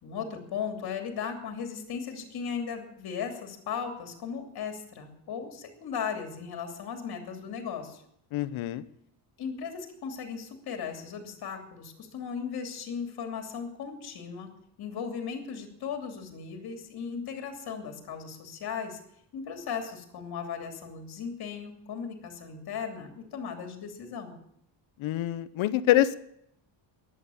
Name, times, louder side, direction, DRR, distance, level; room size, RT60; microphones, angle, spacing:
voice 1, 0.0-8.0 9.4-14.5 14.8-19.0 19.3-24.3, left 6 dB, 50° left, 5 dB, 3.0 m, -37 dB
voice 2, 8.3-8.8 25.0-26.2, left 13 dB, 90° left, 15 dB, 1.0 m, -25 dB
15.0 x 11.0 x 7.2 m, 0.73 s
cardioid pair, 175°, 46 cm